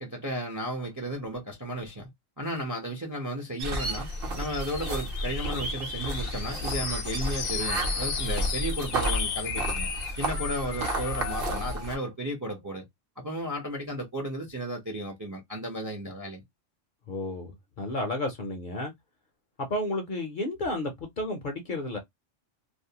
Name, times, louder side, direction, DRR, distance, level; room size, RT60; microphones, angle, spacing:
voice 1, 0.0-2.1 2.4-4.1 4.3-9.9 10.2-12.8 13.2-16.4, right 1 dB, 25° right, 0.4 m, -34 dB
sound 1, 3.6-12.0, right 1 dB, 55° right, 0.9 m, -32 dB
sound 2, 3.9-11.9, left 7 dB, 75° left, 0.9 m, -35 dB
voice 2, 17.1-18.9 19.6-22.0, left 1 dB, 55° left, 0.6 m, -32 dB
2.5 x 2.1 x 2.7 m
omnidirectional pair, 1.3 m